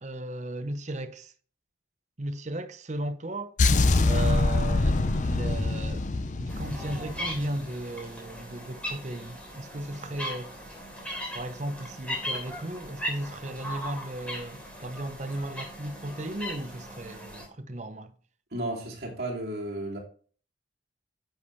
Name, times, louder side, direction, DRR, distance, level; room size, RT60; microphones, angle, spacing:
voice 1, 0.0-1.3 2.2-3.5 4.0-6.1 6.4-10.5 11.3-18.1, right 1 dB, 40° right, 0.8 m, -36 dB
sound 1, 3.6-7.7, left 2 dB, 40° left, 0.6 m, -24 dB
sound 2, 6.5-17.4, equal, 5° left, 3.4 m, -38 dB
voice 2, 18.5-20.0, right 1 dB, 55° right, 2.8 m, -33 dB
10.5 x 7.2 x 3.2 m
head